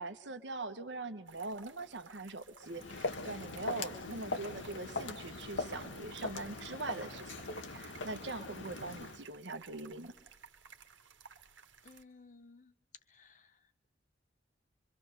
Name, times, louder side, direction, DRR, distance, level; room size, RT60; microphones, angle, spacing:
voice 1, 0.0-7.4 7.7-10.1, right 3 dB, 70° right, 9 dB, 1.5 m, -42 dB
sound 1, 1.3-12.0, right 6 dB, 85° right, 1.7 m, -57 dB
Walk footsteps, 2.6-9.2, left 3 dB, 85° left, 1.6 m, -41 dB
voice 2, 11.8-12.7 13.1-13.7, left 3 dB, 40° left, 11 dB, 1.1 m, -58 dB
25.0 x 24.5 x 6.8 m, 0.91 s
head